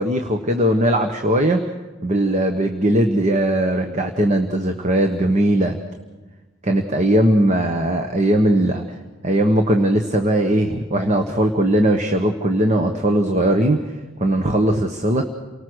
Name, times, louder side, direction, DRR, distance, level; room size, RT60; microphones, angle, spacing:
voice 1, 0.0-1.6 2.0-5.8 6.6-8.8 9.2-13.8 14.2-15.2, right 1 dB, 35° right, 5 dB, 1.2 m, -19 dB
29.0 x 19.0 x 6.3 m, 1.2 s
head